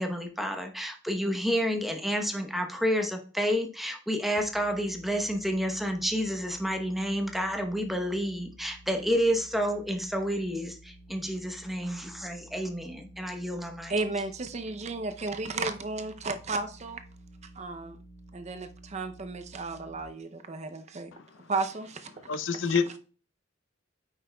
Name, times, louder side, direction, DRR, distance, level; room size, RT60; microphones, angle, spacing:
voice 1, 0.0-13.9, equal, ahead, 0.9 m, -30 dB
sound 1, 4.4-20.0, right 1 dB, 30° left, 2.0 m, -52 dB
voice 2, 13.9-17.0 17.6-18.0 18.3-21.1 21.5-22.1, right 3 dB, 35° right, 0.6 m, -33 dB
voice 3, 22.3-23.0, left 5 dB, 85° left, 0.5 m, -28 dB
8.5 x 5.6 x 2.3 m
head